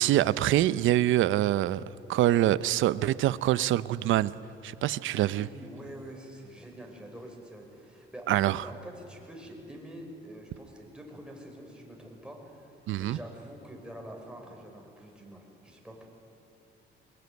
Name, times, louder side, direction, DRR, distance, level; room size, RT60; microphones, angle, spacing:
voice 1, 0.0-1.8 2.1-4.3 4.6-5.5 8.3-8.6 12.9-13.2, right 13 dB, 80° right, 17 dB, 0.7 m, -25 dB
voice 2, 4.9-16.0, right 1 dB, 5° right, 0 dB, 5.5 m, -46 dB
22.0 x 20.5 x 9.6 m, 2.8 s
cardioid pair, 90°, 20 cm